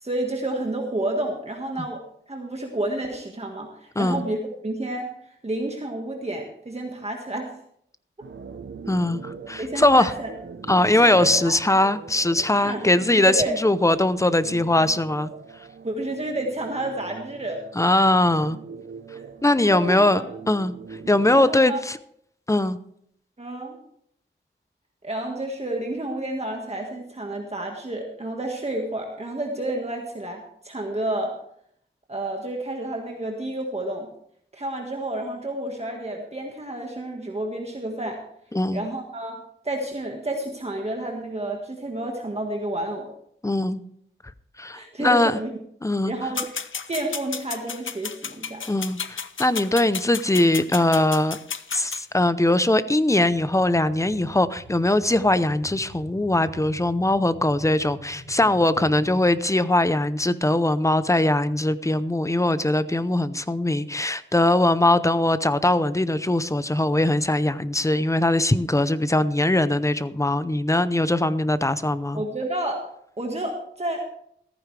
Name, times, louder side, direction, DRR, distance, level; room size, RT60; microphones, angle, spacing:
voice 1, 0.0-2.0 2.3-4.4 4.6-5.1 5.4-7.5 9.6-10.3 10.8-11.6 12.6-12.8 13.2-13.5 15.8-17.6 19.6-20.3 21.3-21.8 23.4-23.8 25.0-31.3 32.1-34.1 34.5-38.2 38.7-39.4 39.6-43.1 44.7-45.5 46.1-48.6 72.1-72.8 73.2-74.0, right 1 dB, 30° right, 1 dB, 1.7 m, -30 dB
sound 1, 8.2-21.4, right 5 dB, 70° right, 0.9 m, -41 dB
voice 2, 8.9-10.1 10.7-15.3 17.8-18.6 19.4-20.7 21.1-22.0 22.5-22.8 38.5-38.8 43.4-43.8 44.6-45.4 45.8-46.1 48.7-51.4 51.7-72.2, left 1 dB, 15° left, 13 dB, 0.7 m, -21 dB
sound 2, 46.3-52.0, left 6 dB, 80° left, 0.7 m, -33 dB
sound 3, 53.2-59.4, equal, 15° right, 2.2 m, -45 dB
15.0 x 14.5 x 3.3 m, 0.69 s
wide cardioid pair, 100°, 20 cm